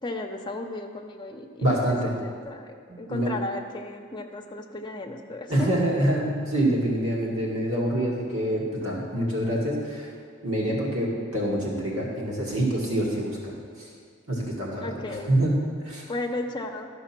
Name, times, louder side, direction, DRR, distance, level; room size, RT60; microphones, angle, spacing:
voice 1, 0.0-5.7 14.8-15.3 16.1-16.9, left 2 dB, 20° left, 2 dB, 0.8 m, -35 dB
voice 2, 1.6-2.1 2.9-3.4 5.5-10.1 10.4-13.5 14.3-15.0 15.3-16.1, right 1 dB, 80° right, -4 dB, 2.0 m, -26 dB
12.5 x 5.4 x 6.0 m, 2.1 s
head